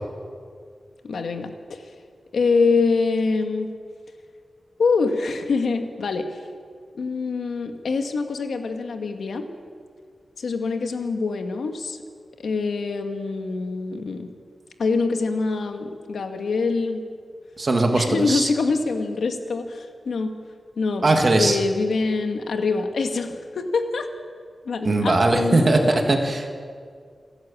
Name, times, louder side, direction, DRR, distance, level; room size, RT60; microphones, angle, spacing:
voice 1, 1.0-1.9 2.3-3.7 4.8-6.4 6.9-9.5 10.4-12.0 12.4-14.3 14.8-17.0 17.9-20.3 20.8-24.1 24.7-26.0, left 4 dB, 85° left, 5 dB, 1.8 m, -25 dB
voice 2, 17.6-18.5 21.0-21.6 24.8-26.5, right 2 dB, 35° right, 3 dB, 2.0 m, -19 dB
27.5 x 11.0 x 8.7 m, 2.1 s
wide cardioid pair, 180°, 0 cm